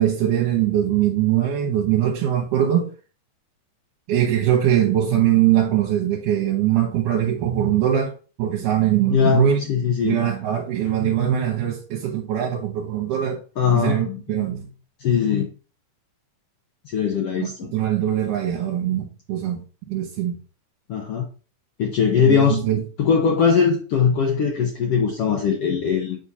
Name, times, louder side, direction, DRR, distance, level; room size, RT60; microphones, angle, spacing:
voice 1, 0.0-2.9 4.1-8.1 8.4-9.6 10.0-13.4 13.7-14.6 17.4-19.6 19.9-20.4 22.2-22.8, right 11 dB, 80° right, 2.3 m, -21 dB
voice 2, 9.1-10.2 11.0-11.1 13.6-14.2 15.0-15.5 16.9-17.7 20.9-21.2 21.8-22.6 23.0-26.2, left 7 dB, 85° left, 1.3 m, -20 dB
7.4 x 5.2 x 2.7 m
omnidirectional pair, 3.9 m